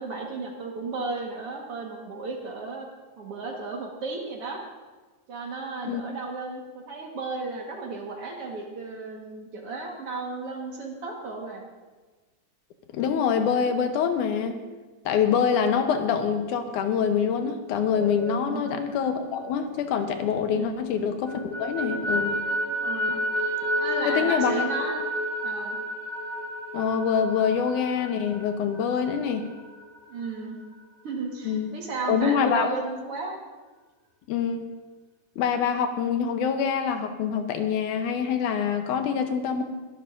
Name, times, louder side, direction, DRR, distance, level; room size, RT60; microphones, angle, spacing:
voice 1, 0.0-2.9 3.2-4.6 5.3-11.6 18.4-18.7 20.5-20.8 22.8-23.2 23.8-25.0 25.4-25.8 30.1-30.6 31.0-33.4, right 3 dB, 55° right, 0 dB, 2.1 m, -34 dB
voice 2, 12.9-14.6 15.1-22.4 24.1-24.6 26.7-29.5 31.4-31.8 32.1-32.7 34.3-34.7 35.4-39.6, left 7 dB, 75° left, 7 dB, 2.3 m, -25 dB
sound 1, 17.8-20.6 21.0-30.4, equal, 90° right, 4.4 m, -31 dB
22.5 x 11.5 x 2.6 m, 1.3 s
omnidirectional pair, 3.7 m